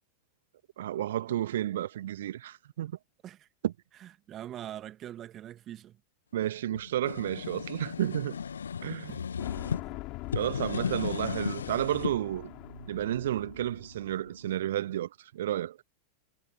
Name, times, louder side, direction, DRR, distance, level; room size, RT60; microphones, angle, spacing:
voice 1, 0.8-3.0 3.6-3.7 6.3-8.4 8.8-9.1 10.3-12.5 12.9-15.8, right 12 dB, 60° right, 1.5 m, -31 dB
voice 2, 4.0-6.0 9.1-9.5 9.8-10.0 10.6-11.0, right 11 dB, 30° right, 2.0 m, -44 dB
sound 1, 6.7-9.8 10.2-12.2, left 7 dB, 70° left, 1.6 m, -35 dB
sound 2, 9.4-14.4, left 22 dB, 40° left, 5.1 m, -43 dB
sound 3, 9.6-14.8, right 2 dB, 85° right, 3.7 m, -52 dB
figure-of-eight pair, 90°, 0 cm